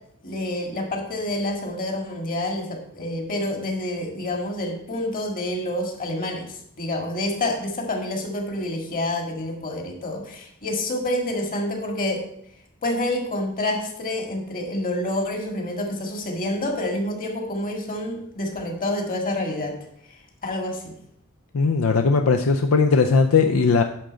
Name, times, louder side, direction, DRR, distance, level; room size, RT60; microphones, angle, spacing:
voice 1, 0.2-12.3 12.8-19.8 20.4-20.9, left 1 dB, 40° left, 2 dB, 1.9 m, -28 dB
voice 2, 21.5-23.8, left 4 dB, 70° left, 6 dB, 0.5 m, -18 dB
10.5 x 3.8 x 6.3 m, 0.70 s
head